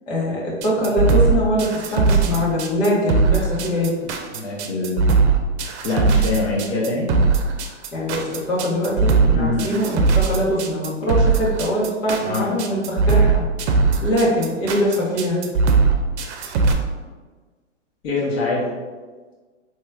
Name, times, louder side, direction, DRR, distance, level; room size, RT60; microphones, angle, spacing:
voice 1, 0.1-3.9 7.9-13.4 14.0-15.4, equal, 85° left, -5 dB, 1.3 m, -22 dB
sound 1, 0.6-16.7, right 4 dB, 65° right, 0.5 m, -19 dB
voice 2, 4.3-5.0 5.8-7.1 9.3-9.7 12.2-12.5 18.0-18.7, left 3 dB, 55° left, -6 dB, 0.9 m, -24 dB
3.0 x 3.0 x 2.3 m, 1.4 s
hypercardioid pair, 120°, 37 cm